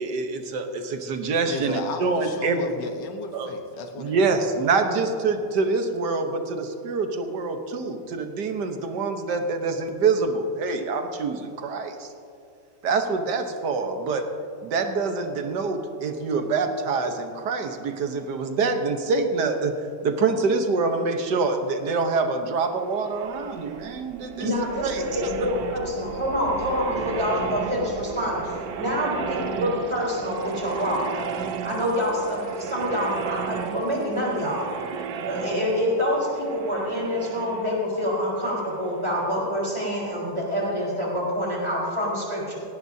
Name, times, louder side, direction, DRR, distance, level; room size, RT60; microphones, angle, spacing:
voice 1, 0.0-2.7 3.3-3.5 4.0-12.1 12.8-14.3 14.6-19.7 20.0-24.5 24.8-25.3, right 4 dB, 70° right, 6 dB, 1.7 m, -25 dB
voice 2, 1.5-4.3, left 4 dB, 80° left, 5 dB, 1.8 m, -34 dB
sound 1, 22.7-39.4, right 7 dB, 90° right, 1.4 m, -34 dB
voice 3, 24.4-31.1 31.6-34.6 35.3-42.6, equal, 15° right, -5 dB, 4.0 m, -26 dB
17.5 x 17.5 x 2.8 m, 2.5 s
omnidirectional pair, 1.9 m